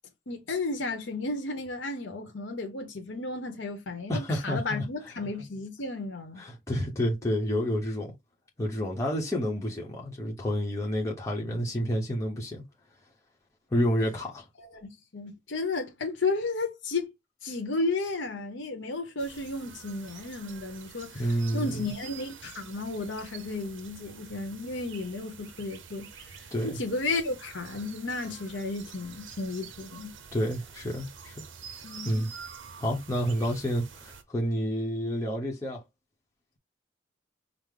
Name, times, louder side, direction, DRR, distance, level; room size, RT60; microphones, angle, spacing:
voice 1, 0.3-6.4 14.6-17.1 17.4-26.1 26.6-30.1 31.8-32.3, left 3 dB, 70° left, 0.9 m, -33 dB
voice 2, 4.1-4.8 6.4-8.1 8.6-12.6 13.7-14.5 21.1-21.9 26.5-26.8 30.3-31.4 32.0-32.3 32.8-35.8, equal, 15° left, 0.9 m, -29 dB
sound 1, 19.2-34.2, right 7 dB, 75° right, 0.7 m, -47 dB
4.9 x 2.0 x 3.8 m
head